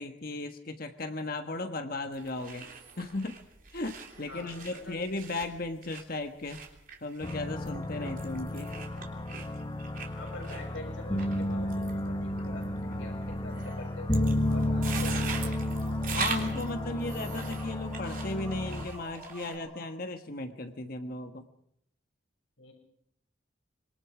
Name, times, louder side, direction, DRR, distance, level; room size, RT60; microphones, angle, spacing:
voice 1, 0.0-2.7 3.0-3.4 3.7-6.6 7.0-8.7 16.1-21.5, left 2 dB, 50° left, 6 dB, 1.4 m, -36 dB
sound 1, 2.1-19.6, right 6 dB, 45° right, 3.3 m, -42 dB
voice 2, 4.3-5.0 8.0-8.3 10.1-15.7 22.6-22.7, left 2 dB, 90° left, 1 dB, 6.5 m, -46 dB
sound 2, 7.2-18.9, left 1 dB, 25° left, 1.3 m, -32 dB
sound 3, 14.3-20.0, equal, 10° right, 5.5 m, -48 dB
25.5 x 23.5 x 5.0 m, 0.71 s
head